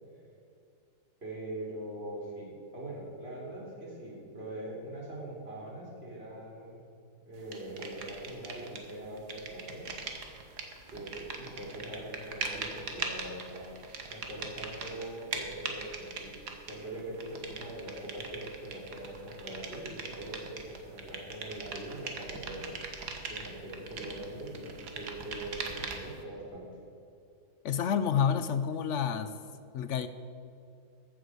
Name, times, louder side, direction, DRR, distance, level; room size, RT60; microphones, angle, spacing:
voice 1, 1.2-6.8 7.3-9.9 10.9-13.7 14.1-16.4 16.6-22.7 23.3-26.7, right 1 dB, 35° right, -4 dB, 3.8 m, -42 dB
sound 1, 7.5-8.9 9.2-26.2, right 4 dB, 75° right, 1.8 m, -41 dB
voice 2, 27.6-29.3 29.7-30.1, left 7 dB, 65° left, 11 dB, 0.8 m, -29 dB
14.5 x 7.9 x 6.3 m, 2.6 s
omnidirectional pair, 1.8 m